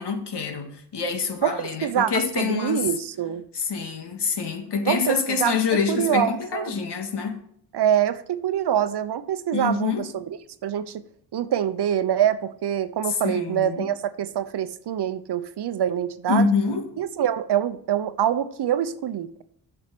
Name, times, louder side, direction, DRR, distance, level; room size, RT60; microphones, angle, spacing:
voice 1, 0.0-2.8 3.5-7.4 9.5-10.1 13.2-13.9 16.3-16.8, left 5 dB, 65° left, 1.9 m, -26 dB
voice 2, 1.4-3.5 4.8-5.6 5.9-6.7 7.7-10.3 10.6-11.0 11.3-16.5 17.0-19.4, right 10 dB, 65° right, 0.9 m, -25 dB
8.5 x 6.6 x 6.2 m
cardioid pair, 60°, 44 cm